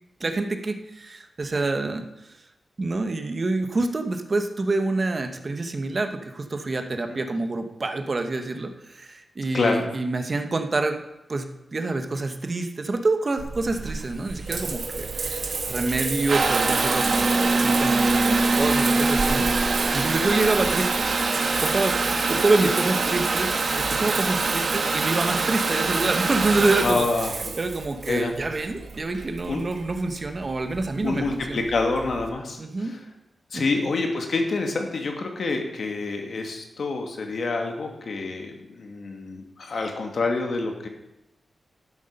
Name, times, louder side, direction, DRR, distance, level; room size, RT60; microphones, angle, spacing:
voice 1, 0.2-2.4 2.8-11.0 11.3-21.0 21.6-27.1 27.5-31.7 32.6-32.9 33.5-33.7, right 2 dB, 35° right, 6 dB, 1.0 m, -27 dB
Water tap faucet / Bathtub (filling or washing) / Trickle dribble, 13.4-32.3, right 3 dB, 60° right, 1.4 m, -25 dB
voice 2, 26.8-27.3 28.1-28.3 29.5-29.6 31.0-33.0 33.5-40.9, left 3 dB, 60° left, 3 dB, 1.8 m, -27 dB
13.0 x 7.8 x 5.4 m, 0.91 s
wide cardioid pair, 130°, 0 cm